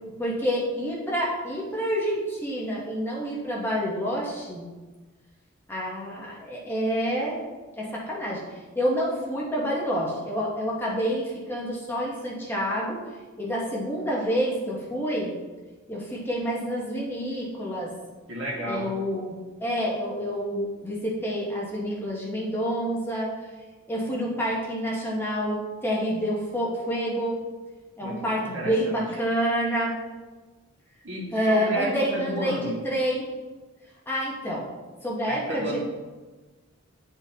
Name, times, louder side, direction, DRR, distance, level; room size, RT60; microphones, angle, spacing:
voice 1, 0.2-4.7 5.7-7.4 7.8-8.4 8.8-13.0 13.4-15.3 15.9-17.9 18.7-23.3 23.9-27.4 28.0-29.9 31.3-33.3 34.1-34.6 35.0-35.8, equal, 10° left, -4 dB, 0.9 m, -28 dB
voice 2, 18.3-18.9 28.0-29.1 31.0-32.8 35.3-35.8, equal, 65° right, -5 dB, 1.8 m, -32 dB
9.7 x 3.7 x 2.8 m, 1.3 s
head